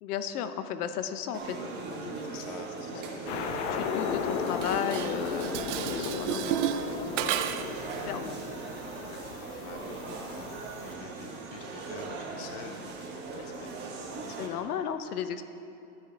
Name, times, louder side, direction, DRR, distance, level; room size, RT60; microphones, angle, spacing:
voice 1, 0.0-1.6 1.9-2.3 2.9-3.0 3.7-5.5 5.9-7.8 8.1-8.5 9.8-10.2 14.3-15.4, left 8 dB, 90° left, 10 dB, 0.8 m, -35 dB
sound 1, 1.3-14.5, right 3 dB, 25° right, 1.2 m, -39 dB
voice 2, 2.0-3.5 6.9-7.2 8.8-10.0 10.3-10.6 10.8-14.6, left 6 dB, 20° left, 5 dB, 0.4 m, -49 dB
sound 2, 3.3-10.9, left 6 dB, 50° left, 0.8 m, -36 dB
Dishes pots and pans, 4.5-7.8, right 10 dB, 55° right, 0.5 m, -32 dB
13.0 x 6.6 x 4.4 m, 3.0 s
supercardioid pair, 155°, 44 cm